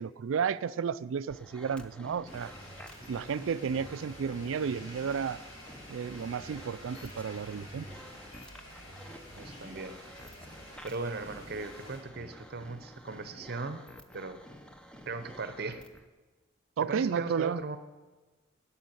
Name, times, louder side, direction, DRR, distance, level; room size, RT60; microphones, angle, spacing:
voice 1, 0.0-2.5 3.1-5.4 5.9-7.8 16.8-17.6, right 6 dB, 70° right, 17 dB, 0.4 m, -32 dB
sound 1, 1.3-16.1, equal, 5° left, 0.7 m, -51 dB
sound 2, 2.3-12.0, equal, 80° left, 5.7 m, -49 dB
voice 2, 9.4-10.0 10.8-13.9 14.1-14.4 15.1-15.8 16.8-17.8, right 3 dB, 50° right, 10 dB, 0.7 m, -38 dB
11.5 x 7.2 x 9.6 m, 1.3 s
head